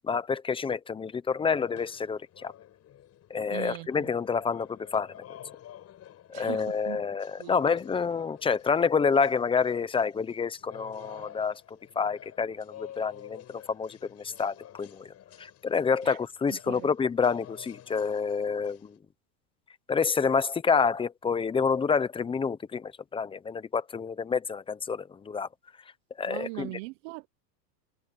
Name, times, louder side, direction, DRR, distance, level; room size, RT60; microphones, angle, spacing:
voice 1, 0.0-2.5 3.3-5.2 6.3-19.0 19.9-25.5 26.2-26.8, left 5 dB, 10° left, 0.7 m, -28 dB
sound 1, 1.5-19.0, left 11 dB, 30° left, 6.8 m, -51 dB
voice 2, 3.5-4.1 6.3-7.0 7.4-7.6 16.0-16.2 16.5-16.9 26.3-27.3, right 24 dB, 50° right, 1.0 m, -40 dB
supercardioid pair, 145°, 49 cm